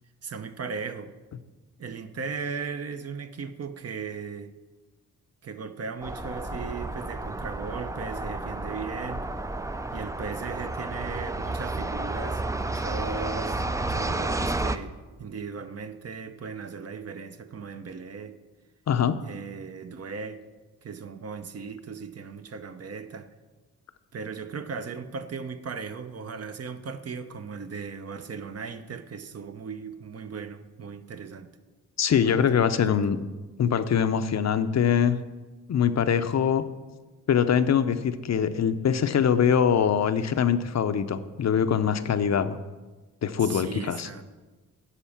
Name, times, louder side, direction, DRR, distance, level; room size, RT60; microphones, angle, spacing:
voice 1, 0.2-1.1 1.8-4.5 5.4-9.3 9.9-18.4 19.2-20.4 20.8-23.3 24.1-31.5 32.2-33.0 43.4-44.2, right 5 dB, 45° right, 0.7 m, -37 dB
sound 1, 6.0-14.8, right 2 dB, 10° right, 0.4 m, -31 dB
voice 2, 18.9-19.2 32.0-33.2 33.6-35.2 35.7-36.6 37.3-42.6 43.2-44.1, left 8 dB, 50° left, 0.6 m, -23 dB
10.0 x 5.1 x 7.2 m
cardioid pair, 80°, 34 cm